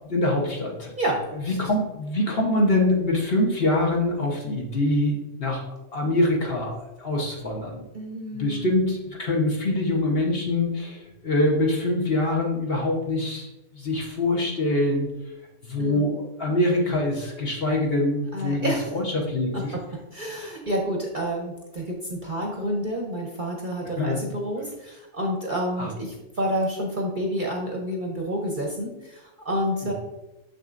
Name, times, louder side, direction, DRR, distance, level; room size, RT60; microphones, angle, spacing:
voice 1, 0.1-0.9 1.5-5.6 5.9-7.8 8.3-13.5 13.7-15.1 15.6-19.7 20.4-20.5 24.0-24.2 25.8-25.9 29.8-29.9, left 1 dB, 45° left, -1 dB, 1.1 m, -24 dB
voice 2, 1.0-1.6 7.9-8.7 15.8-16.1 18.3-18.9 19.5-19.6 20.1-29.9, equal, 40° right, -1 dB, 0.9 m, -29 dB
6.6 x 6.5 x 2.5 m, 0.98 s
omnidirectional pair, 1.6 m